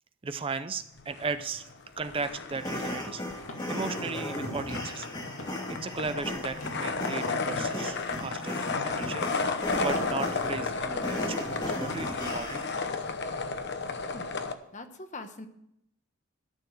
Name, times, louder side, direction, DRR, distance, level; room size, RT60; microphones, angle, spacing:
voice 1, 0.2-1.6 2.0-5.1 5.7-9.2 9.8-11.4 11.7-12.6, right 4 dB, 25° right, 11 dB, 0.4 m, -36 dB
sound 1, 1.0-1.8 2.0-14.5, left 4 dB, 55° left, 0.9 m, -33 dB
sound 2, 1.8-11.3, left 2 dB, 80° left, 2.2 m, -48 dB
sound 3, 2.6-12.8, left 1 dB, 20° left, 1.8 m, -37 dB
voice 2, 14.7-15.5, left 2 dB, 35° left, 8 dB, 1.0 m, -42 dB
12.5 x 6.9 x 7.8 m, 0.77 s
head